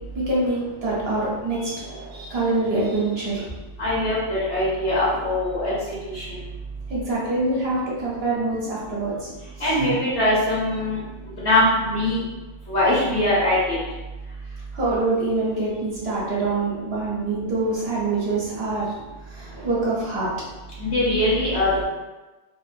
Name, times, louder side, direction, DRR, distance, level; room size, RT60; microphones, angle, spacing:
voice 1, 0.1-3.5 6.9-9.3 9.6-9.9 14.7-18.9 19.3-20.3, right 2 dB, 55° right, -6 dB, 1.1 m, -25 dB
voice 2, 3.8-5.7 6.0-6.2 9.6-11.0 11.4-12.2 12.7-13.8 20.8-21.8, left 1 dB, 65° left, -7 dB, 1.1 m, -21 dB
2.8 x 2.4 x 2.5 m, 1.2 s
omnidirectional pair, 1.3 m